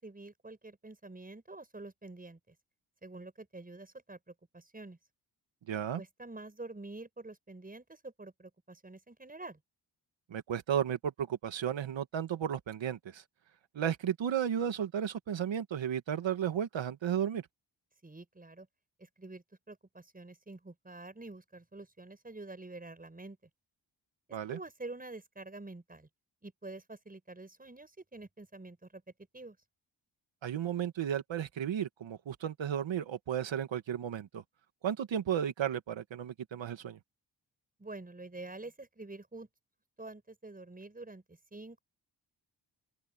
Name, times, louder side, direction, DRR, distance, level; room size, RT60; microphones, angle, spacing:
voice 1, 0.0-2.5 3.0-5.0 6.0-9.6 18.0-18.7 19.0-23.4 24.5-26.1 26.4-29.0 29.3-29.6 37.8-39.5 40.0-41.8, right 2 dB, 20° right, 6.6 m, -47 dB
voice 2, 5.7-6.0 10.3-13.2 13.7-17.4 24.3-24.6 30.4-34.4 34.8-37.0, right 9 dB, 75° right, 2.1 m, -34 dB
open air
cardioid pair, 100°, 45 cm